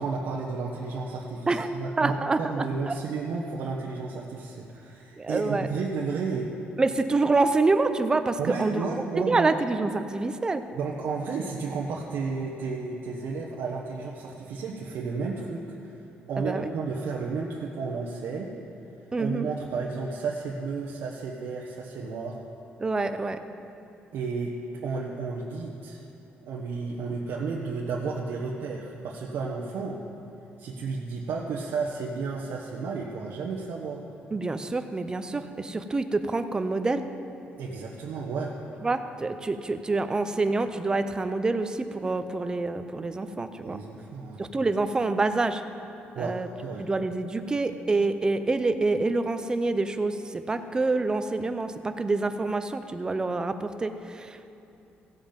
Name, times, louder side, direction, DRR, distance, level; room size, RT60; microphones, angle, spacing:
voice 1, 0.0-6.5 8.4-9.6 10.7-15.9 16.3-18.5 19.2-22.3 24.1-24.5 24.8-26.0 26.4-30.0 30.6-34.0 37.6-38.5 43.6-44.4 46.1-46.8, right 4 dB, 70° right, -3 dB, 1.1 m, -32 dB
voice 2, 1.5-2.9 5.2-5.7 6.8-8.8 9.2-10.6 16.4-16.7 19.1-19.5 22.8-23.4 34.3-37.1 38.8-43.8 44.4-45.6 46.2-46.5 46.8-54.5, right 3 dB, 20° right, 9 dB, 0.6 m, -27 dB
16.0 x 7.9 x 5.2 m, 2.7 s
cardioid pair, 120°, 4 cm